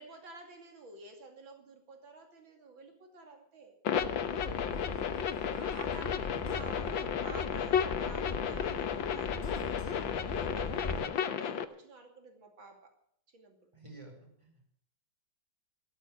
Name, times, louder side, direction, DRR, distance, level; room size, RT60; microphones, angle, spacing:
voice 1, 0.0-3.8 4.3-4.9 5.5-12.9 13.3-13.7, right 3 dB, 80° right, 4 dB, 3.4 m, -51 dB
sound 1, 3.8-11.6, left 8 dB, 80° left, 1.8 m, -33 dB
sound 2, 3.9-11.0, left 2 dB, 35° left, 3.2 m, -41 dB
voice 2, 4.5-4.9 13.7-14.7, right 1 dB, 15° right, 2 dB, 4.9 m, -52 dB
15.5 x 13.0 x 6.5 m, 0.67 s
omnidirectional pair, 2.1 m